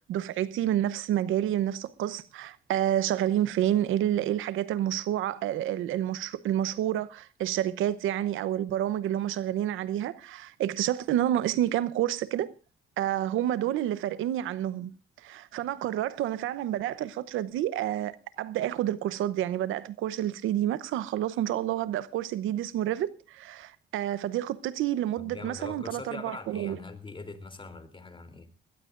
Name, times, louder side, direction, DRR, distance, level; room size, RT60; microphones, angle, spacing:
voice 1, 0.1-12.5 13.0-15.0 15.2-26.8, right 12 dB, 85° right, 0.8 m, -29 dB
voice 2, 25.2-28.5, left 3 dB, 25° left, 3.2 m, -42 dB
21.0 x 17.0 x 2.5 m
cardioid pair, 90°, 20 cm